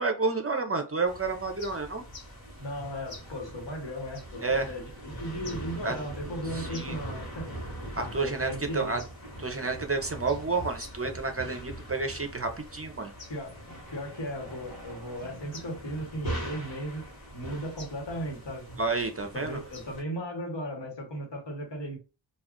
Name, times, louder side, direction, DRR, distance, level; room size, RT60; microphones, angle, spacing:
voice 1, 0.0-2.0 4.4-4.7 5.8-6.0 6.5-7.0 8.0-9.0 9.4-13.1 18.8-19.6, right 3 dB, 30° right, 0.5 m, -30 dB
sound 1, 1.0-20.0, right 1 dB, 55° left, 1.3 m, -42 dB
voice 2, 2.6-7.5 8.2-9.0 13.3-13.6 13.9-18.7 19.3-22.0, equal, 75° left, 1.2 m, -36 dB
2.3 x 2.3 x 3.6 m
wide cardioid pair, 45°, 44 cm